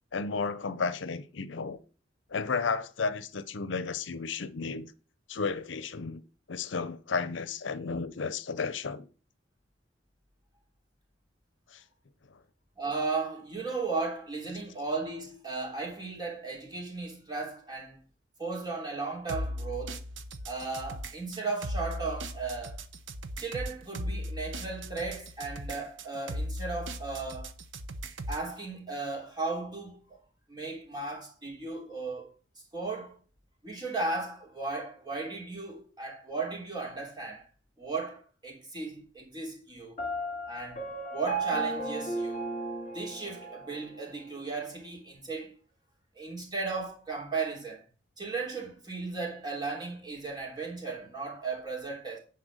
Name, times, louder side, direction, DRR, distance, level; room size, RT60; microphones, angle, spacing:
voice 1, 0.1-1.8 2.3-4.9 5.3-6.2 6.5-9.1 11.7-11.8, left 4 dB, 75° left, 0.7 m, -33 dB
voice 2, 12.8-18.0 18.4-20.0 20.5-22.8 23.4-27.5 28.3-30.2 30.5-32.3 32.7-33.2 33.6-37.5 37.8-40.0 40.5-40.8 41.1-42.5 42.9-45.5 46.1-47.8 48.2-52.2, right 3 dB, 25° right, 3.2 m, -36 dB
sound 1, 19.3-28.5, equal, 80° right, 0.9 m, -37 dB
Piano, 40.0-43.8, right 2 dB, 35° left, 2.8 m, -34 dB
10.0 x 4.2 x 6.4 m
head